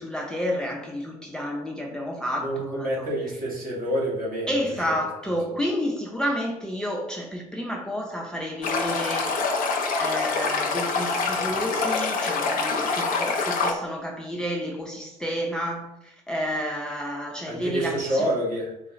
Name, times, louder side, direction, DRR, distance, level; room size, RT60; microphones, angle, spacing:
voice 1, 0.0-3.1 4.5-9.4 10.0-18.3, equal, 5° left, 0.5 m, -30 dB
voice 2, 2.4-4.5 5.0-5.1 5.5-5.6 17.5-18.7, equal, 50° right, 1.4 m, -28 dB
Stream, 8.6-13.7, left 4 dB, 45° left, 0.7 m, -25 dB
3.9 x 2.3 x 3.1 m
figure-of-eight pair, 50°, 19 cm